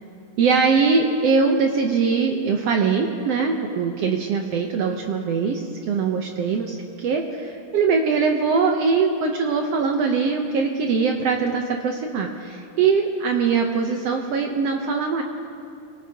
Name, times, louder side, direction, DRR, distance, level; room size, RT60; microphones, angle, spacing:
voice 1, 0.4-5.6 5.9-15.2, right 5 dB, 70° right, 3 dB, 1.6 m, -22 dB
24.5 x 17.5 x 2.8 m, 2.6 s
omnidirectional pair, 3.4 m